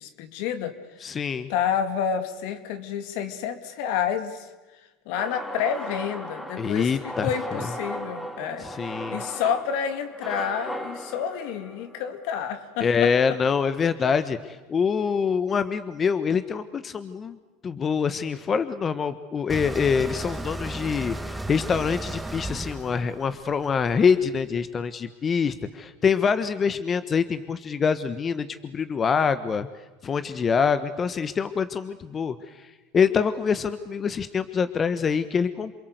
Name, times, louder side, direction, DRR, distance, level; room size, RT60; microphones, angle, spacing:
voice 1, 0.0-4.5 5.1-13.4, left 8 dB, 70° left, 9 dB, 2.7 m, -29 dB
voice 2, 1.0-1.5 6.6-7.6 8.6-9.2 12.8-17.4 17.6-29.7 30.0-32.4 32.9-35.8, left 6 dB, 30° left, 12 dB, 1.3 m, -25 dB
sound 1, 5.2-13.3, equal, 10° left, 3.5 m, -37 dB
sound 2, 19.5-24.4, right 1 dB, 5° right, 1.7 m, -35 dB
28.0 x 22.0 x 8.1 m, 1.2 s
supercardioid pair, 95°, 0 cm